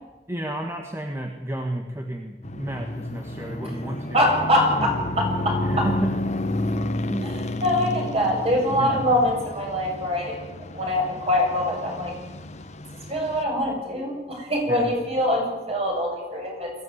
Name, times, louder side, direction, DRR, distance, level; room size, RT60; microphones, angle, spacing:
voice 1, 0.3-4.3 5.6-6.1 7.1-7.3 8.8-9.1 14.7-14.9, right 1 dB, 15° right, 3 dB, 1.6 m, -31 dB
sound 1, 2.4-13.4, left 1 dB, 40° left, 1.4 m, -31 dB
voice 2, 4.1-5.9 7.2-7.3 7.6-10.4 10.7-12.1 13.1-16.7, left 1 dB, 35° right, 1 dB, 7.1 m, -24 dB
21.5 x 16.0 x 9.4 m, 1.1 s
head